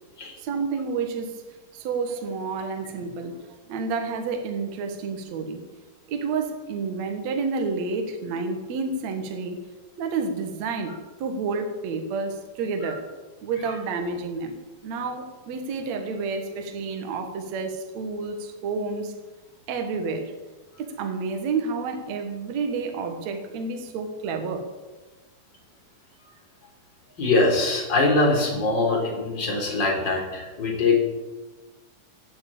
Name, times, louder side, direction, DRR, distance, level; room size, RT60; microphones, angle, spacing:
voice 1, 0.4-5.6 6.1-9.6 10.0-13.1 13.4-14.6 14.8-19.1 19.7-20.3 20.8-24.7, right 4 dB, 55° right, 2.4 m, -30 dB
voice 2, 27.2-31.0, left 2 dB, 30° left, 4.1 m, -22 dB
16.0 x 9.3 x 8.7 m
omnidirectional pair, 4.3 m